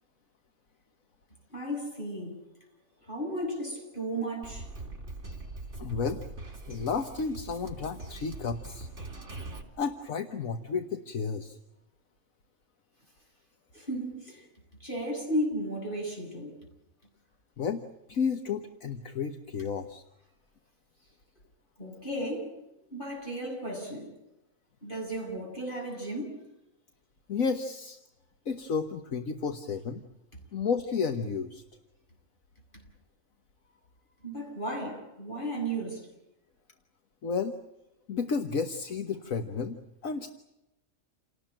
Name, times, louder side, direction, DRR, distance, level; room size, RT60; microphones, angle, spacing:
voice 1, 1.5-2.4 3.0-4.7 13.7-14.5 14.8-16.7 21.8-22.6 22.9-24.1 24.8-26.4 34.2-36.1, right 1 dB, 35° left, 8.2 m, -34 dB
Drum kit, 4.4-9.6, right 2 dB, 55° right, 4.1 m, -42 dB
voice 2, 5.8-6.2 6.7-8.9 9.8-11.6 17.6-17.8 18.1-20.0 27.3-28.0 28.4-30.0 30.5-31.6 37.2-37.6 38.1-40.3, left 5 dB, 70° left, 1.7 m, -32 dB
29.0 x 18.5 x 9.0 m
omnidirectional pair, 1.5 m